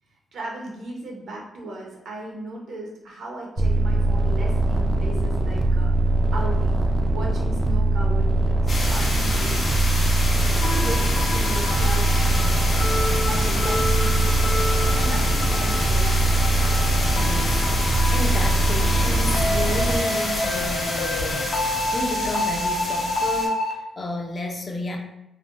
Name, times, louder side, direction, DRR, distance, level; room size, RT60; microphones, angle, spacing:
voice 1, 0.3-6.8 7.1-9.9 10.5-12.6 13.3-14.5 14.9-16.5, right 1 dB, 75° right, -2 dB, 0.8 m, -36 dB
sound 1, 3.6-20.0, right 2 dB, 35° right, 0.4 m, -22 dB
sound 2, 8.7-23.5, left 2 dB, 50° left, 1.0 m, -28 dB
sound 3, 10.6-23.7, left 2 dB, 85° left, 0.6 m, -29 dB
voice 2, 17.2-25.0, left 1 dB, 35° left, 2 dB, 0.4 m, -32 dB
3.4 x 2.1 x 2.5 m, 0.84 s
cardioid pair, 110°, 0 cm